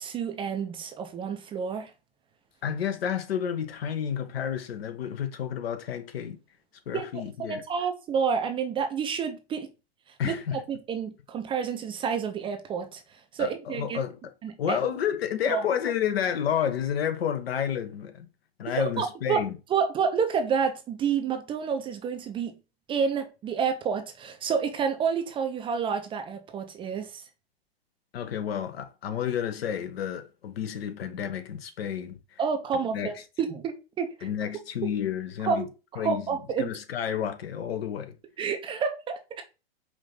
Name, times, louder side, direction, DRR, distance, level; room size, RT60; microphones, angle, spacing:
voice 1, 0.0-1.9 6.9-9.7 10.2-14.0 14.4-14.8 15.5-15.6 18.7-19.4 19.7-22.5 22.9-27.2 32.4-34.3 35.5-35.7 35.9-36.7 38.4-39.4, right 6 dB, 15° right, 0.4 m, -29 dB
voice 2, 2.6-6.4 6.9-7.6 10.2-10.6 13.4-14.3 14.6-18.3 18.6-19.5 28.1-32.4 32.9-33.1 34.2-35.7 36.0-36.3 36.6-38.1, left 8 dB, 70° left, 0.9 m, -30 dB
5.0 x 2.6 x 3.8 m
hypercardioid pair, 115°, 31 cm